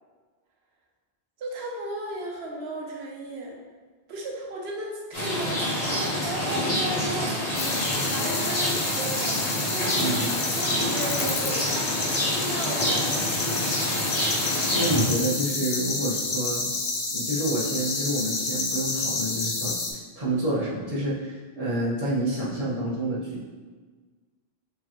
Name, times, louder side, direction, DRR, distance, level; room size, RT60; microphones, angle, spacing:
voice 1, 1.4-3.6 4.1-13.3, right 2 dB, 90° right, -1 dB, 1.1 m, -35 dB
Rain, 5.1-15.1, equal, 40° left, 1.3 m, -27 dB
sound 1, 7.5-19.9, left 3 dB, 85° left, 1.0 m, -29 dB
voice 2, 9.9-10.4 14.7-16.7 17.1-19.7 20.2-23.4, right 1 dB, 40° right, -8 dB, 1.1 m, -28 dB
5.0 x 3.3 x 2.9 m, 1.4 s
omnidirectional pair, 1.0 m